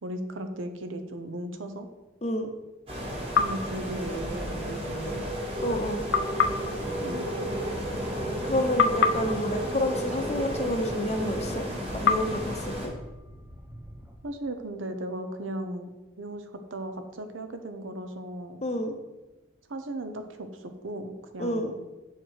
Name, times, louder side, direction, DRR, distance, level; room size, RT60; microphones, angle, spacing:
voice 1, 0.0-1.9 3.4-5.2 7.0-7.6 14.2-15.9 16.2-18.7 19.7-21.8, right 1 dB, 90° right, 7 dB, 0.8 m, -36 dB
sound 1, 2.9-12.9, equal, 30° right, 1.6 m, -32 dB
sound 2, 3.3-4.7 6.1-8.4 8.8-11.1 12.1-13.9, left 5 dB, 75° left, 0.5 m, -30 dB
voice 2, 5.6-6.0 8.4-12.9 18.6-19.0 21.4-21.7, left 1 dB, 35° left, 6 dB, 0.6 m, -29 dB
sound 3, 6.8-14.1, equal, 5° right, 0.8 m, -45 dB
6.5 x 4.6 x 4.6 m, 1.1 s
head